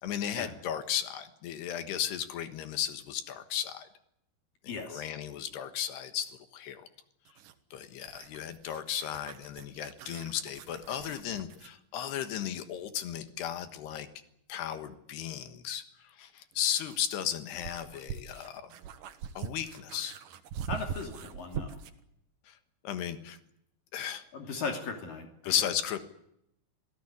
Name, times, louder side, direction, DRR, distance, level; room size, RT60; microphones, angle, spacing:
voice 1, 0.0-3.9 4.6-6.9 7.7-14.1 14.5-18.7 19.4-20.2 22.5-22.6 22.8-23.4 23.9-24.2 25.4-26.0, left 10 dB, 80° left, 9 dB, 3.6 m, -35 dB
voice 2, 4.7-5.1 20.7-21.8 24.3-25.5, left 4 dB, 60° left, 3 dB, 4.3 m, -37 dB
sound 1, 7.3-11.8 14.1-14.2 16.2-22.0, right 8 dB, 65° right, 2.7 m, -43 dB
27.0 x 17.0 x 9.9 m, 0.77 s
omnidirectional pair, 4.7 m